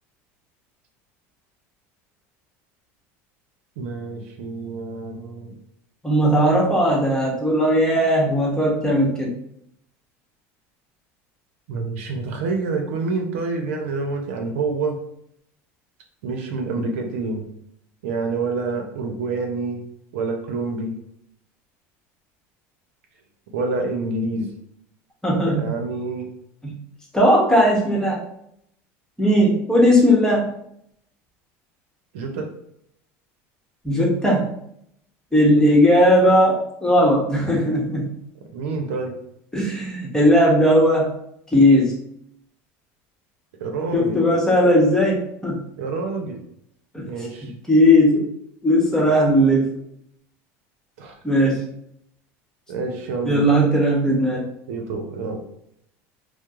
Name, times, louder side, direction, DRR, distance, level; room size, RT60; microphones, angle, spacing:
voice 1, 3.8-5.6 11.7-15.0 16.2-17.5 18.0-19.8 20.1-20.9 23.5-24.5 25.4-26.3 32.1-32.5 38.5-39.1 43.6-44.2 45.8-46.4 47.0-47.5 51.0-51.2 52.7-53.5 54.7-55.4, right 3 dB, 85° right, 3 dB, 0.6 m, -27 dB
voice 2, 6.0-9.3 16.8-16.9 25.2-25.7 26.6-26.7 27.1-28.2 29.2-30.5 33.8-34.5 35.3-38.1 39.5-41.1 41.5-41.9 43.9-45.6 46.9-47.1 47.7-48.2 48.6-49.7 51.2-51.6 53.2-54.4, equal, 10° left, -3 dB, 1.0 m, -17 dB
4.4 x 2.0 x 2.4 m, 0.74 s
supercardioid pair, 110°, 7 cm